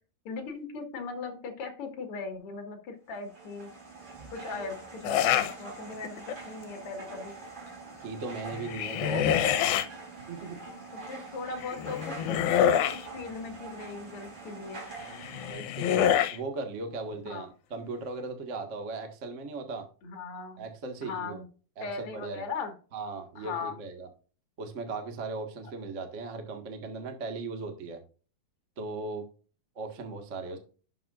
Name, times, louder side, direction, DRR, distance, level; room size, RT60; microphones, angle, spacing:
voice 1, 0.2-3.7 4.3-7.4 10.9-14.8 17.2-17.5 20.0-20.6 21.0-21.4 21.8-22.7 23.4-23.8, left 4 dB, 45° left, 4 dB, 2.3 m, -39 dB
sound 1, 3.1-15.5, right 3 dB, 30° right, 4.1 m, -44 dB
sound 2, 5.0-5.5 6.0-6.5 8.5-9.9 11.6-13.0 15.0-16.4, left 10 dB, 85° left, 2.6 m, -26 dB
voice 2, 8.0-9.4 10.3-10.6 15.5-19.9 20.6-21.4 21.8-22.4 22.9-24.1 24.6-28.0 28.8-29.2 29.7-30.6, right 3 dB, 70° right, 4 dB, 0.7 m, -38 dB
11.5 x 7.0 x 2.5 m, 0.37 s
omnidirectional pair, 4.3 m